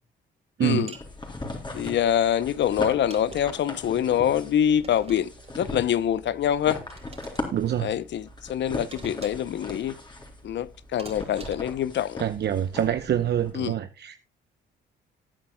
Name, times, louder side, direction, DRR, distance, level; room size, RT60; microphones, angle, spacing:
voice 1, 0.6-1.0 1.7-5.3 5.5-6.8 7.8-10.0 10.4-12.2 13.5-13.8, left 10 dB, 65° left, 0.8 m, -25 dB
sound 1, 0.9-13.5, left 2 dB, 25° left, 3.8 m, -39 dB
sound 2, 0.9-1.1 2.8-3.7 4.8-5.6 6.9-7.4 8.9-9.6 11.0-11.8, right 4 dB, 30° right, 3.5 m, -45 dB
voice 2, 7.5-7.9 12.2-14.2, right 10 dB, 55° right, 0.9 m, -26 dB
19.5 x 8.9 x 2.3 m
cardioid pair, 90°, 20 cm